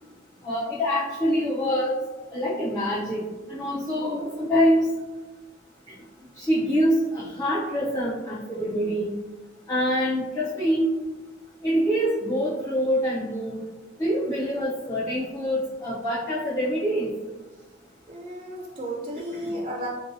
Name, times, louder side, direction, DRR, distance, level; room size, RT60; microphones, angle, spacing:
voice 1, 0.4-1.9 2.3-3.2 3.5-4.8 6.4-9.1 9.7-10.9 11.6-13.6 14.0-17.1 19.4-19.5, equal, 15° left, -9 dB, 0.6 m, -25 dB
voice 2, 18.1-19.9, equal, 30° right, -2 dB, 0.4 m, -33 dB
3.8 x 2.7 x 2.6 m, 1.2 s
head